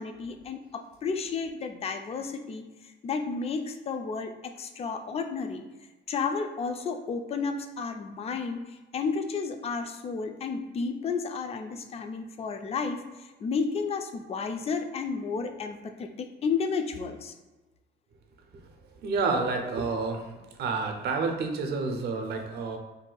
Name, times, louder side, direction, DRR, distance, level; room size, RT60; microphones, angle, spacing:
voice 1, 0.0-2.7 3.0-5.6 6.1-17.3 19.5-19.7, left 5 dB, 30° left, 7 dB, 0.3 m, -32 dB
voice 2, 19.0-20.3 20.6-22.8, right 4 dB, 55° right, 4 dB, 0.6 m, -29 dB
2.6 x 2.3 x 3.8 m, 1.2 s
cardioid pair, 110°, 20 cm